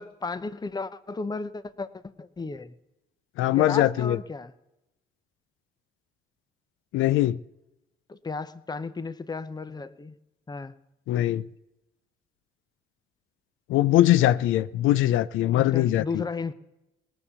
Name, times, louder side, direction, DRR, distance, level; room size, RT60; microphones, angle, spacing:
voice 1, 0.0-2.7 3.6-4.5 8.1-10.2 10.5-10.8 15.6-16.5, left 4 dB, 20° left, 0.7 m, -34 dB
voice 2, 3.4-4.2 6.9-7.4 11.1-11.4 13.7-16.2, left 14 dB, 85° left, 0.4 m, -21 dB
18.0 x 7.1 x 6.9 m
cardioid pair, 90°, 20 cm